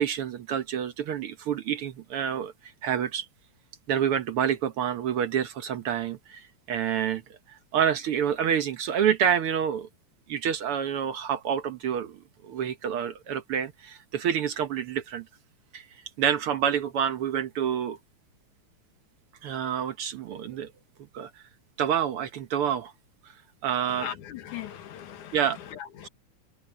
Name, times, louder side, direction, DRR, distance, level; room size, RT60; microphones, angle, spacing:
voice 1, 0.0-2.5 2.8-3.3 3.9-7.2 7.5-9.9 10.3-15.2 15.7-15.8 16.2-18.0 19.4-20.7 21.1-21.3 21.8-22.9 23.6-24.1 25.3-25.6, right 8 dB, 60° right, 1.5 m, -28 dB
voice 2, 23.9-26.1, left 10 dB, 85° left, 3.0 m, -39 dB
omnidirectional pair, 3.4 m